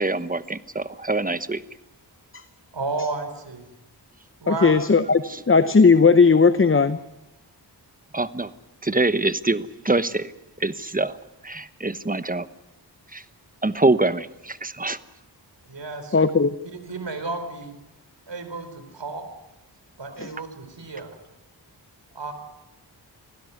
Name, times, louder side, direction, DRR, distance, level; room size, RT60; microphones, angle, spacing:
voice 1, 0.0-1.6 5.3-5.4 8.1-8.5 8.8-10.3 10.6-11.2 11.4-12.5 13.1-13.2 13.6-15.0, right 2 dB, 20° right, 13 dB, 1.1 m, -24 dB
voice 2, 2.7-3.7 4.4-4.8 15.7-16.3 16.6-17.8 18.3-19.2 20.0-21.2 22.1-22.3, right 3 dB, 80° right, 8 dB, 4.1 m, -32 dB
voice 3, 4.5-7.0 16.1-16.5 20.2-20.3, left 4 dB, 30° left, 13 dB, 0.8 m, -17 dB
25.5 x 16.0 x 9.5 m, 0.94 s
wide cardioid pair, 65°, 42 cm